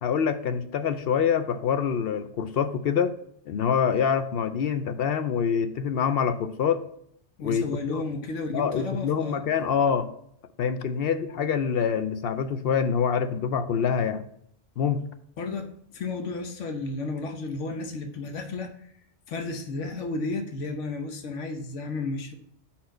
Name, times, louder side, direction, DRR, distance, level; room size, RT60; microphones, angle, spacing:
voice 1, 0.0-3.1 3.5-6.8 7.4-8.0 8.5-10.1 10.6-14.2 14.8-15.1, left 7 dB, 65° left, 10 dB, 0.7 m, -25 dB
voice 2, 7.4-9.4 15.4-18.7 19.3-22.3, left 3 dB, 85° left, 5 dB, 1.2 m, -33 dB
5.5 x 4.4 x 6.3 m, 0.69 s
omnidirectional pair, 1.2 m